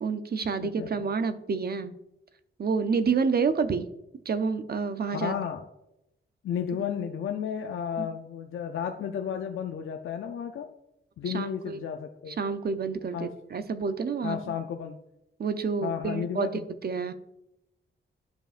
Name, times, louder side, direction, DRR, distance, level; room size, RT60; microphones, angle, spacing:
voice 1, 0.0-2.0 2.6-3.9 4.3-5.3 8.0-8.1 11.3-11.8 12.3-14.6 15.4-16.5 16.8-17.1, right 5 dB, 50° right, 11 dB, 0.6 m, -29 dB
voice 2, 0.6-1.1 5.1-5.6 6.4-10.7 11.2-12.4 13.1-13.3 14.2-15.0 15.8-16.7, left 8 dB, 80° left, 5 dB, 0.5 m, -33 dB
11.0 x 5.0 x 2.5 m, 0.86 s
wide cardioid pair, 90°, 21 cm